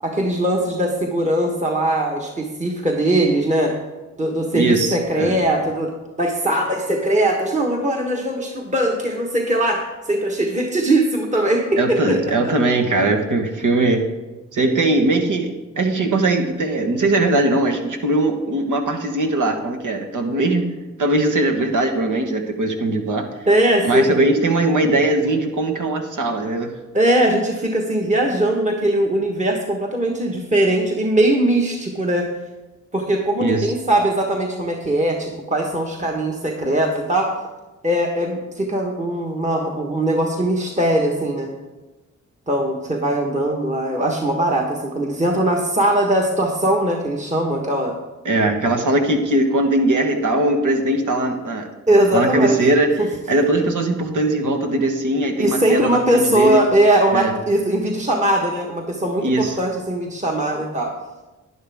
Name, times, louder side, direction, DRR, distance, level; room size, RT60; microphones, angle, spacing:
voice 1, 0.0-3.7 4.2-5.9 6.2-12.2 12.4-12.5 23.5-24.1 26.9-32.3 32.9-37.3 37.8-41.5 42.5-47.9 51.9-52.6 53.0-53.1 55.4-60.9, right 1 dB, 25° right, 0 dB, 1.3 m, -20 dB
voice 2, 4.5-5.4 11.8-14.0 14.5-20.7 21.0-23.3 23.8-26.7 33.4-33.7 48.2-51.7 52.1-52.9 53.3-56.7 57.1-57.3 59.2-59.6, right 2 dB, 75° right, 4 dB, 1.4 m, -20 dB
11.0 x 10.5 x 3.6 m, 1.1 s
cardioid pair, 80°, 31 cm